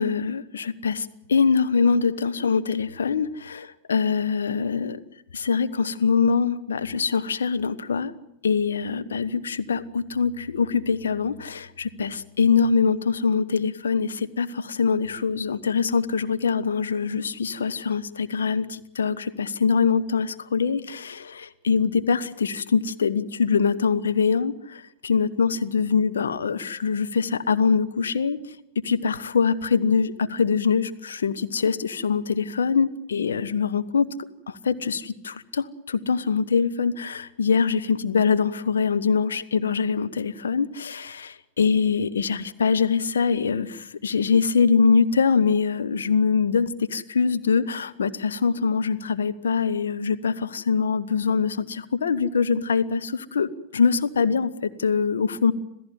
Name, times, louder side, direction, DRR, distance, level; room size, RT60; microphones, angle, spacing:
voice 1, 0.0-5.0 5.3-8.1 8.4-28.4 28.8-34.1 34.5-55.5, left 5 dB, 70° left, 10 dB, 1.2 m, -23 dB
26.5 x 16.0 x 9.5 m, 0.80 s
figure-of-eight pair, 90°, 0 cm